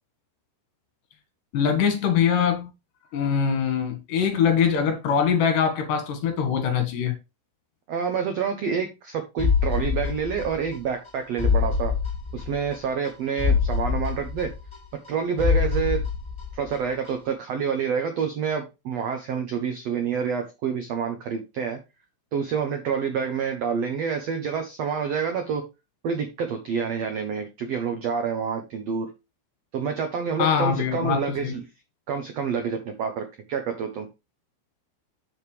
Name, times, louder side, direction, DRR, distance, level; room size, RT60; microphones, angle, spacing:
voice 1, 1.5-2.7 3.1-7.1 30.4-31.5, left 7 dB, 60° left, 3.0 m, -23 dB
voice 2, 7.9-11.9 12.3-14.5 15.1-16.0 16.5-21.8 22.3-25.6 26.0-29.1 29.7-31.6 32.1-34.1, right 6 dB, 85° right, 1.4 m, -28 dB
sound 1, 9.4-10.8 11.1-11.2 11.4-12.8 13.1-13.2 13.4-15.1 15.4-16.8 17.1-17.2, left 6 dB, 15° left, 0.9 m, -25 dB
7.8 x 7.1 x 3.3 m
omnidirectional pair, 4.5 m